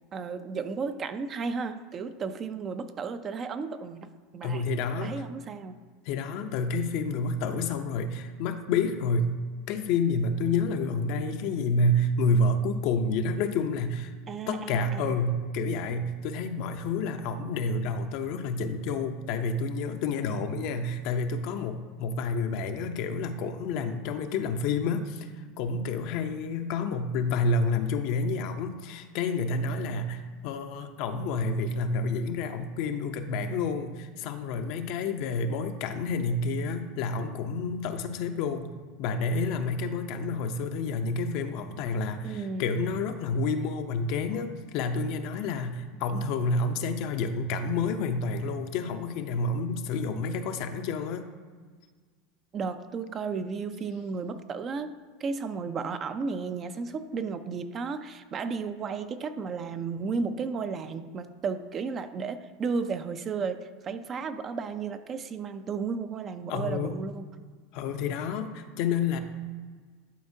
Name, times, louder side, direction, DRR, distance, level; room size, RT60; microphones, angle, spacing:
voice 1, 0.1-4.6 5.0-5.8 14.3-15.2 42.2-42.7 52.5-54.9 55.2-67.3, right 5 dB, 35° right, 10 dB, 0.5 m, -33 dB
voice 2, 4.4-5.2 6.0-9.3 9.7-14.1 14.5-38.7 39.0-51.3 66.5-67.0 67.7-69.2, left 3 dB, 60° left, 7 dB, 0.6 m, -29 dB
11.5 x 4.3 x 2.7 m, 1.5 s
supercardioid pair, 110°, 0 cm